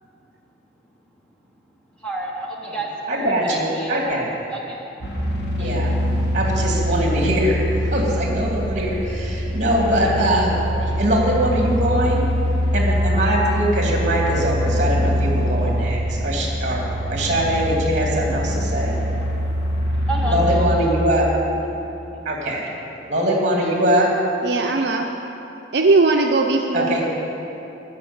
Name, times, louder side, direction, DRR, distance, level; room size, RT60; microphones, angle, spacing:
voice 1, 2.0-4.0 4.5-5.0 5.6-5.7 20.1-20.6, right 2 dB, 5° left, -2 dB, 0.9 m, -30 dB
voice 2, 3.1-4.3 5.5-6.0 6.3-7.6 7.9-10.5 10.8-12.3 12.7-16.8 17.1-19.0 20.2-21.3 22.2-22.7 23.1-24.1 26.7-27.0, right 1 dB, 40° right, -1 dB, 2.3 m, -22 dB
sound 1, 5.0-20.6, equal, 65° left, 1.9 m, -23 dB
voice 3, 24.4-25.1 25.7-27.0, right 3 dB, 60° right, 2 dB, 0.6 m, -18 dB
13.0 x 5.9 x 9.5 m, 3.0 s
head